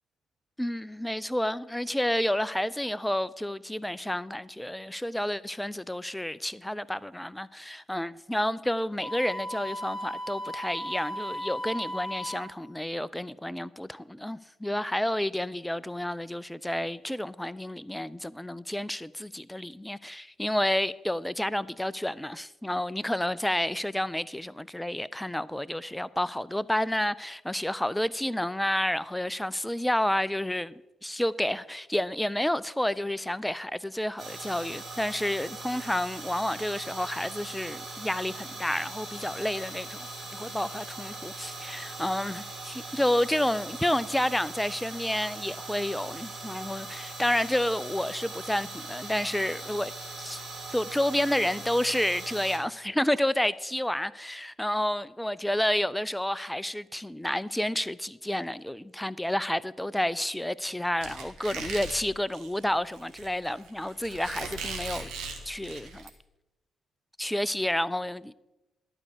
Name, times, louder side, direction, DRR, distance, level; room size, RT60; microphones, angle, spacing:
voice 1, 0.6-30.7 31.0-49.9 50.2-50.4 50.7-65.1 65.5-66.1 67.2-68.3, left 1 dB, 5° left, 0.4 m, -30 dB
Wind instrument woodwind instrument, 9.0-12.6, equal, 25° left, 1.2 m, -36 dB
sound 1, 34.2-52.6, right 3 dB, 35° right, 3.6 m, -40 dB
Squeak, 61.0-66.1, right 4 dB, 65° right, 1.6 m, -39 dB
12.0 x 4.7 x 8.2 m
figure-of-eight pair, 40°, 0 cm